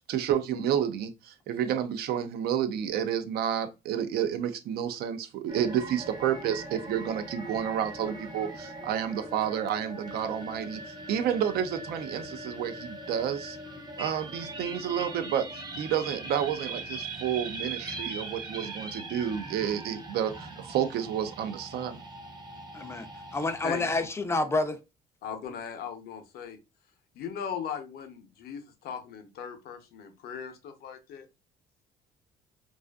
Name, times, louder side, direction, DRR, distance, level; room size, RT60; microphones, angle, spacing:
voice 1, 0.0-13.6 14.0-22.0, right 9 dB, 70° right, 0.4 m, -30 dB
sound 1, 5.5-24.1, right 2 dB, 25° right, 0.6 m, -41 dB
voice 2, 22.7-23.1 23.3-24.8, left 2 dB, 15° left, 0.4 m, -28 dB
voice 3, 25.2-26.6 27.1-31.3, left 7 dB, 65° left, 0.6 m, -38 dB
2.5 x 2.4 x 2.2 m
cardioid pair, 110°, 17 cm